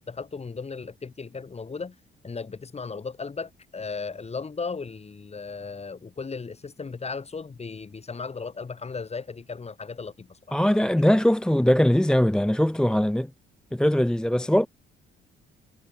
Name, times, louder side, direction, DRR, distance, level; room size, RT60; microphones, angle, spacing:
voice 1, 0.0-2.0 2.2-11.0, left 4 dB, 30° left, 5.9 m, -36 dB
voice 2, 10.5-13.3 13.7-14.7, equal, 5° left, 0.7 m, -21 dB
cardioid pair, 90°, 20 cm